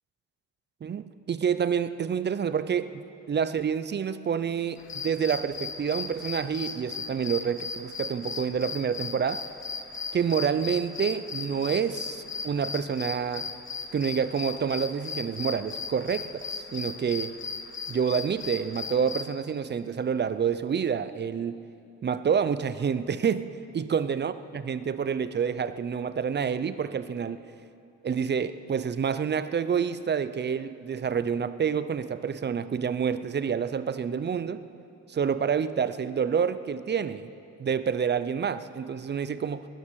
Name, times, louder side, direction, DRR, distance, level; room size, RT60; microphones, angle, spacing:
voice 1, 0.8-9.4 10.1-13.5 13.9-17.3 17.9-21.6 22.0-23.5 23.7-27.4 28.0-34.6 35.1-37.3 37.6-39.7, right 7 dB, 35° right, 13 dB, 0.6 m, -28 dB
sound 1, 4.8-19.2, left 5 dB, 40° left, 1.1 m, -37 dB
20.0 x 10.5 x 6.4 m, 2.6 s
cardioid pair, 90°, 30 cm